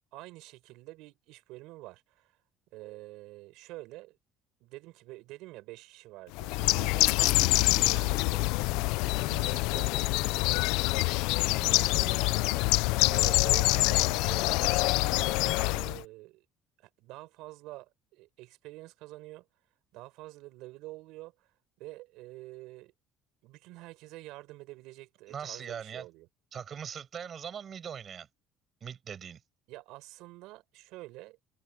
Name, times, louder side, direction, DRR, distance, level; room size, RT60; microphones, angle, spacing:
voice 1, 0.1-2.3 2.7-4.2 4.6-8.5 9.1-10.2 11.5-12.2 13.1-16.4 16.8-19.5 19.9-21.5 21.8-22.9 23.4-26.3 29.7-31.4, right 19 dB, 75° right, 5.7 m, -47 dB
Bird, 6.4-16.0, left 22 dB, 85° left, 0.4 m, -26 dB
voice 2, 25.3-26.0 26.5-28.3 28.8-29.4, right 7 dB, 30° right, 5.9 m, -40 dB
cardioid pair, 155°, 0 cm